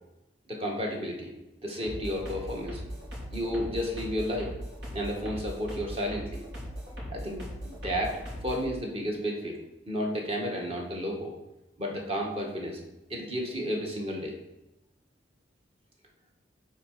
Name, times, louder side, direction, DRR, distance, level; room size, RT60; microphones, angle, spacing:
voice 1, 0.5-1.3 1.6-2.8 3.3-4.5 4.9-6.4 7.1-9.6 9.9-11.3 11.8-12.8 13.1-14.3, equal, 35° right, 0 dB, 1.7 m, -32 dB
sound 1, 1.8-8.6, equal, 75° right, 3.3 m, -39 dB
9.8 x 4.3 x 4.9 m, 0.94 s
head